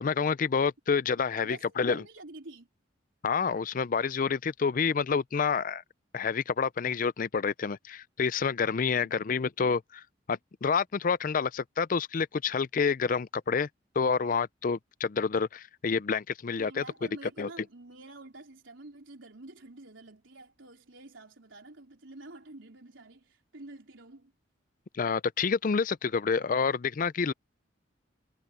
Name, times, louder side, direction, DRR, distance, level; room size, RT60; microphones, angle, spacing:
voice 1, 0.0-2.0 3.2-5.8 6.1-10.0 10.3-13.7 14.0-16.8 17.4-17.5 24.9-27.3, left 5 dB, 45° left, 0.4 m, -28 dB
voice 2, 1.4-2.7 8.9-9.3 16.6-24.3, right 2 dB, 90° right, 4.0 m, -48 dB
head